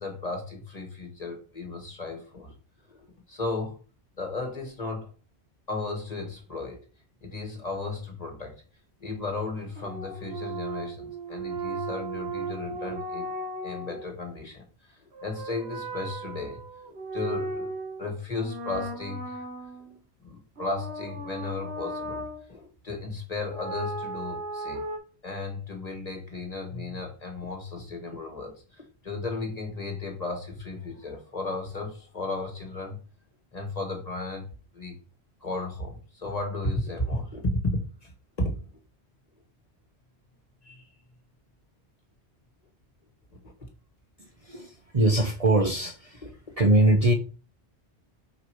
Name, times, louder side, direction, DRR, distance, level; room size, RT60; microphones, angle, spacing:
voice 1, 0.0-2.5 2.9-3.8 4.2-5.1 5.7-6.8 7.2-8.6 9.0-13.3 13.6-16.6 17.1-17.7 18.0-19.4 20.2-24.8 25.2-33.0 33.5-34.5 34.7-35.0 35.4-38.1 38.4-38.5 40.6-40.9 43.4-43.5, left 2 dB, 35° left, 3 dB, 1.6 m, -34 dB
sound 1, 9.8-14.0 15.1-18.0 18.3-20.0 20.6-22.4 23.5-25.0, right 2 dB, 75° right, 1.6 m, -36 dB
voice 2, 44.4-46.3 46.6-47.1, right 2 dB, 35° right, 2 dB, 0.8 m, -22 dB
5.2 x 4.8 x 4.6 m, 0.36 s
omnidirectional pair, 1.1 m